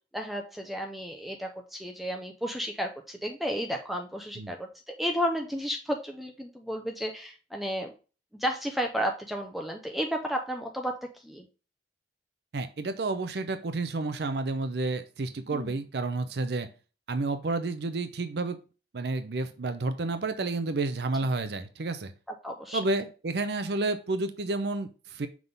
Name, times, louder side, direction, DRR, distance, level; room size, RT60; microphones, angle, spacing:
voice 1, 0.1-7.9 8.4-11.5 15.5-15.8 22.4-22.8, equal, ahead, 3 dB, 0.6 m, -32 dB
voice 2, 12.5-16.7 17.1-18.6 18.9-22.1 22.7-25.3, right 3 dB, 65° right, 10 dB, 0.6 m, -30 dB
6.0 x 3.6 x 5.2 m, 0.34 s
head